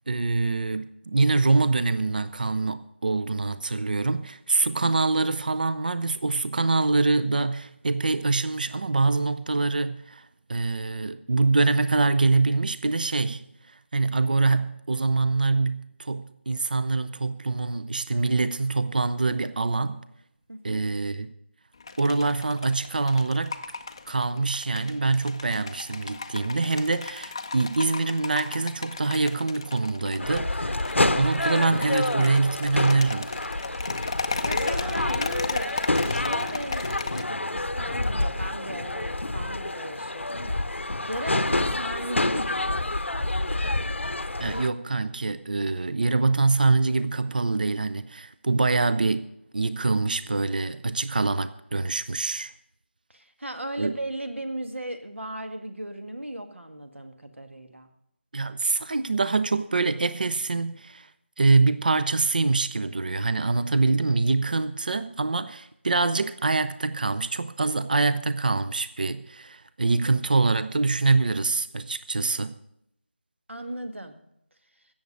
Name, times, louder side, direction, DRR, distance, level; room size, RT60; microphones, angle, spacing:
voice 1, 0.1-13.4 13.9-20.0 20.6-21.3 22.0-23.6 24.1-33.3 44.4-49.3 49.5-52.5 53.8-54.0 58.3-61.1 61.4-72.6, right 3 dB, 45° right, 0.6 m, -24 dB
voice 2, 20.5-20.8 34.4-35.7 36.0-40.8 41.1-42.8 53.1-57.9 73.5-74.1, right 1 dB, 75° right, 1.8 m, -36 dB
sound 1, 21.7-37.2, left 4 dB, 25° left, 0.5 m, -36 dB
sound 2, 30.2-44.7, left 2 dB, 75° left, 0.8 m, -28 dB
16.0 x 7.3 x 6.2 m
figure-of-eight pair, 165°, 7 cm